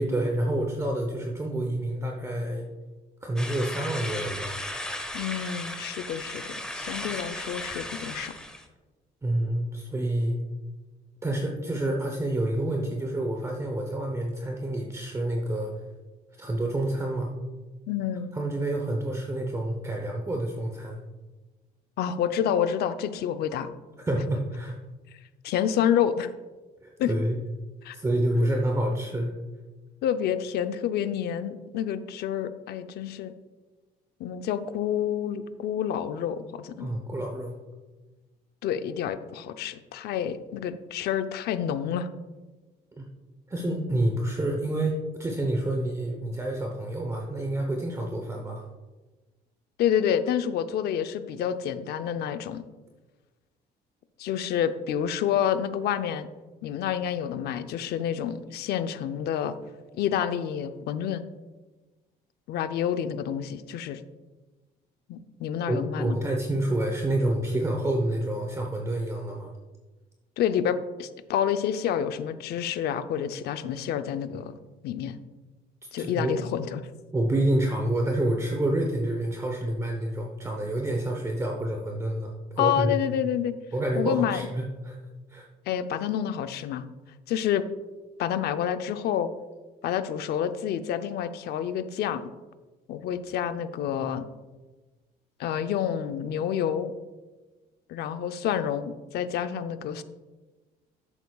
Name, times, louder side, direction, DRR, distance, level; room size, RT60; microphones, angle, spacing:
voice 1, 0.0-2.7 3.2-4.6 9.2-10.4 11.2-15.7 16.4-17.3 18.3-21.0 24.1-24.8 26.8-27.4 27.9-29.3 36.8-37.5 43.0-43.1 43.5-48.6 65.7-69.5 76.0-76.3 77.1-83.0 83.7-85.0 85.3-85.5, right 1 dB, 15° right, 1 dB, 0.9 m, -28 dB
sound 1, 3.4-8.6, left 1 dB, 5° left, 1.1 m, -36 dB
voice 2, 5.1-8.3 17.9-18.3 22.0-23.7 25.4-26.3 27.0-27.1 27.8-28.0 30.0-33.3 34.2-36.9 38.6-42.1 49.8-52.6 54.2-56.3 56.6-59.6 60.0-61.2 62.5-64.0 65.1-66.2 70.4-74.6 74.8-75.2 75.9-76.8 82.6-83.5 84.0-84.5 85.7-86.9 87.3-87.7 88.2-89.3 89.8-92.3 92.9-94.3 95.4-96.9 97.9-100.0, left 9 dB, 70° left, 10 dB, 0.6 m, -28 dB
11.0 x 8.1 x 2.4 m, 1.2 s
cardioid pair, 110°, 17 cm